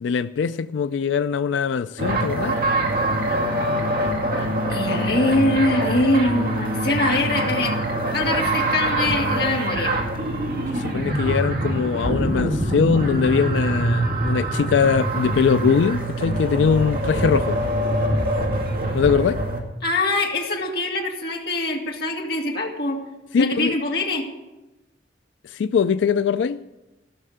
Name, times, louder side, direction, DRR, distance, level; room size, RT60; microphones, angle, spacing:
voice 1, 0.0-2.6 10.7-17.6 18.9-19.4 23.3-23.8 25.4-26.6, left 6 dB, 80° left, 0.3 m, -21 dB
sound 1, 2.0-19.6, right 1 dB, 50° right, 2.2 m, -24 dB
voice 2, 4.7-10.0 19.8-23.0 23.4-24.3, left 2 dB, 60° left, 2.1 m, -23 dB
15.5 x 6.6 x 7.9 m
head